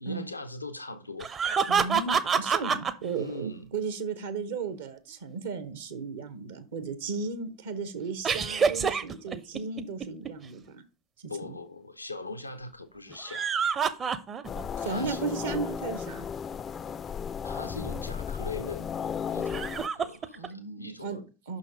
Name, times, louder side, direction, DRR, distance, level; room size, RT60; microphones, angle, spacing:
voice 1, 0.0-1.3 3.2-3.7 11.3-13.5 14.8-15.2 17.4-18.9 19.3-21.3, left 2 dB, 85° left, 0.6 m, -40 dB
sound 1, 1.2-2.9 8.2-10.3 13.1-14.7 15.1-15.2 17.5-17.6 19.4-20.5, right 6 dB, 30° right, 0.6 m, -27 dB
voice 2, 1.7-10.8 11.2-11.6 14.8-16.3 20.3-21.6, right 5 dB, 65° right, 0.8 m, -35 dB
sound 2, 14.4-19.9, left 7 dB, 30° left, 0.3 m, -34 dB
5.8 x 4.0 x 5.1 m
figure-of-eight pair, 80°, 0 cm